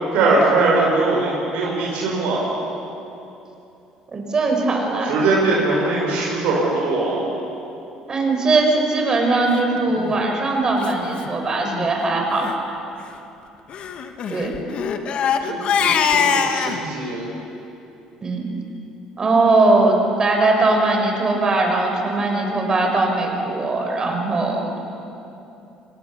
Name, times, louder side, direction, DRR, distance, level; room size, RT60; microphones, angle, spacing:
voice 1, 0.1-2.4 5.0-7.2 15.5-17.3, right 3 dB, 75° right, -3 dB, 4.7 m, -21 dB
voice 2, 4.1-5.1 8.1-12.5 14.3-14.5 18.2-18.4 19.2-24.8, right 2 dB, 35° right, 2 dB, 5.3 m, -20 dB
Crying sobbing, 9.9-10.2 10.8-10.9 11.2-11.3 11.6-11.9 12.3-12.6 13.7-16.8, left 7 dB, 55° left, 1.6 m, -22 dB
25.0 x 18.5 x 7.1 m, 2.9 s
supercardioid pair, 75°, 2 cm